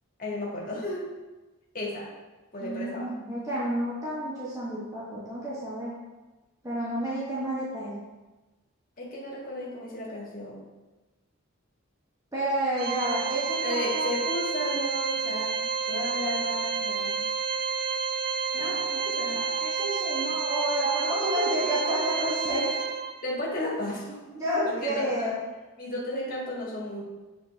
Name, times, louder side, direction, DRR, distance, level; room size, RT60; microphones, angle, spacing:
voice 1, 0.2-1.0 1.7-2.1 2.5-3.1 9.0-10.6 13.6-17.2 18.5-18.8 19.0-19.4 23.2-25.3 25.8-27.0, left 1 dB, 40° left, -5 dB, 1.6 m, -34 dB
voice 2, 2.6-5.9 6.6-8.0 12.3-14.1 18.5-19.0 19.3-22.8 24.3-25.4, right 1 dB, 15° right, -8 dB, 1.2 m, -30 dB
Organ, 12.8-23.4, right 5 dB, 40° right, 0.3 m, -30 dB
7.6 x 4.1 x 3.4 m, 1.2 s
head